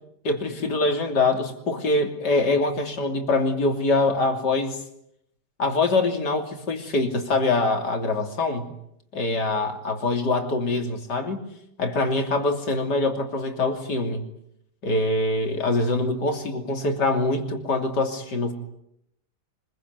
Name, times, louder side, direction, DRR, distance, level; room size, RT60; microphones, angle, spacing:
voice 1, 0.2-4.8 5.6-8.7 9.1-11.4 11.8-14.2 14.8-18.5, left 2 dB, 75° left, 4 dB, 3.6 m, -24 dB
25.0 x 22.0 x 9.4 m, 0.77 s
omnidirectional pair, 1.8 m